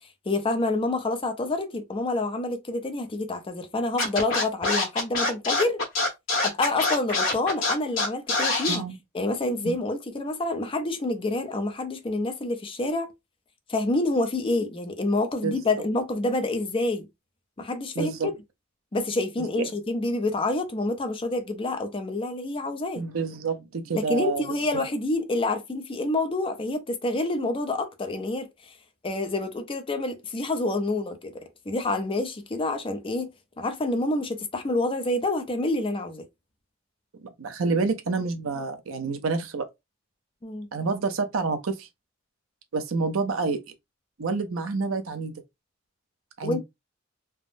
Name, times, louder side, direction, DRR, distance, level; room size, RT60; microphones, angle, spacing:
voice 1, 0.3-5.8 6.4-8.8 9.1-13.1 13.7-17.1 17.6-18.3 18.9-23.0 23.9-28.7 29.0-36.2 40.4-40.7 46.4-46.6, left 2 dB, 25° left, 0.5 m, -28 dB
Scratching (performance technique), 4.0-8.8, left 2 dB, 80° left, 1.3 m, -24 dB
voice 2, 18.0-18.3 19.4-19.6 23.0-24.4 37.2-39.7 40.7-41.9 42.7-43.6 44.2-45.3 46.4-46.6, right 4 dB, 85° right, 0.6 m, -28 dB
3.4 x 2.0 x 2.5 m
head